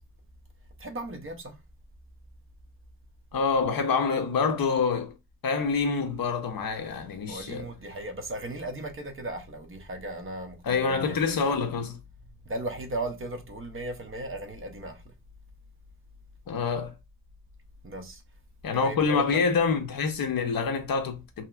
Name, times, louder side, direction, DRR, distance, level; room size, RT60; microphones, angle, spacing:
voice 1, 0.8-1.6 7.3-11.2 12.4-15.0 17.8-18.2 18.7-19.4, right 1 dB, 30° right, 0.7 m, -36 dB
voice 2, 3.3-5.1 5.4-7.7 10.6-12.0 16.5-16.9 18.6-21.4, left 5 dB, 60° left, 0.7 m, -26 dB
2.9 x 2.8 x 2.3 m
wide cardioid pair, 130°, 40 cm